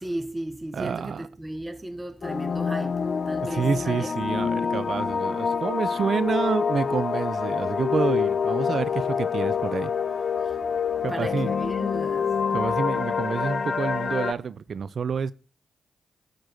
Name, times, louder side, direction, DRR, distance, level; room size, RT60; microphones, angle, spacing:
voice 1, 0.0-4.1 11.1-12.3, right 1 dB, 20° right, 0.9 m, -35 dB
voice 2, 0.7-1.3 3.5-9.9 11.0-11.5 12.5-15.3, right 6 dB, 60° right, 0.4 m, -28 dB
sound 1, 2.2-14.3, left 6 dB, 55° left, 0.4 m, -26 dB
10.0 x 3.9 x 6.3 m
supercardioid pair, 50°, 0 cm